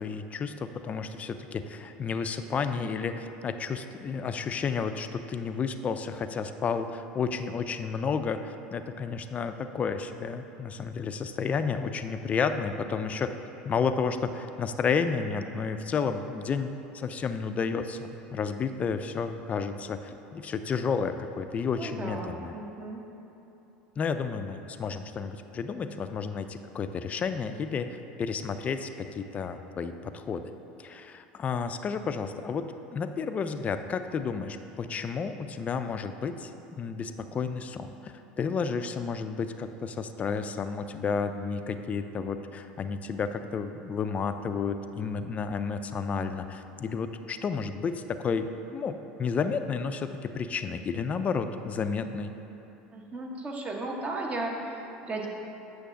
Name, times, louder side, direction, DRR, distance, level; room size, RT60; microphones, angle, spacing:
voice 1, 0.0-13.3 13.6-22.5 24.0-30.5 30.8-52.3, left 5 dB, 30° left, 9 dB, 0.4 m, -31 dB
voice 2, 21.8-23.0 52.9-55.3, right 2 dB, 25° right, 1 dB, 0.9 m, -35 dB
8.1 x 6.3 x 2.6 m, 2.9 s
hypercardioid pair, 90°, 5 cm